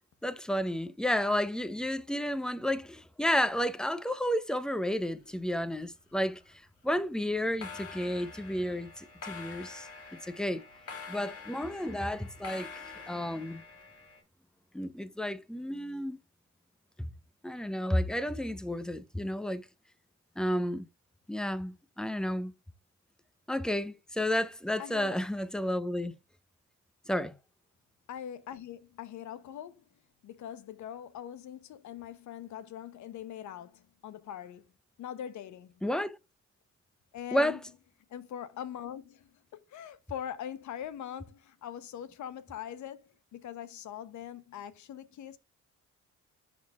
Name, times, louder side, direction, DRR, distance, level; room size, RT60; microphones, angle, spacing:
voice 1, 0.2-6.4 6.8-9.9 10.3-10.6 11.1-12.8 13.1-13.6 14.7-16.2 17.0-17.1 17.4-19.6 20.4-20.9 21.3-22.5 23.5-26.1 27.1-27.4 35.8-36.2 37.3-37.6, equal, ahead, 0.6 m, -31 dB
sound 1, 5.0-5.9 6.1-6.5 7.4-14.2, left 4 dB, 50° left, 2.2 m, -46 dB
voice 2, 24.8-25.2 28.1-29.8 30.2-34.7 35.0-35.8 37.1-37.6 38.1-45.4, left 10 dB, 70° left, 0.9 m, -42 dB
11.0 x 3.8 x 2.4 m
cardioid pair, 90°, 30 cm